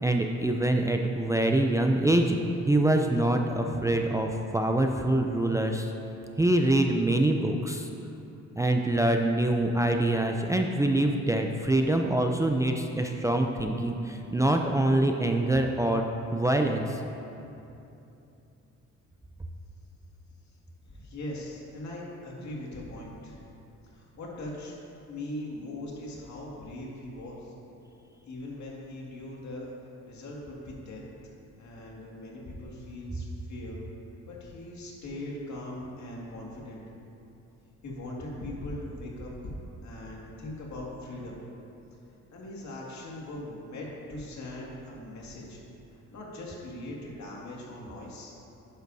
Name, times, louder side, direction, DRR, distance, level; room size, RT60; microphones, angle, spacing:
voice 1, 0.0-2.4 2.7-5.9 6.4-7.9 8.6-17.0, right 1 dB, 10° right, 3 dB, 0.5 m, -25 dB
voice 2, 20.9-23.4 23.9-24.8 25.1-27.5 28.3-29.7 30.0-31.0 31.6-33.8 34.2-36.8 37.8-39.5 39.8-41.4 42.3-45.6 46.1-48.3, left 1 dB, 65° left, -3 dB, 2.2 m, -40 dB
11.0 x 10.0 x 2.7 m, 2.8 s
cardioid pair, 90°, 30 cm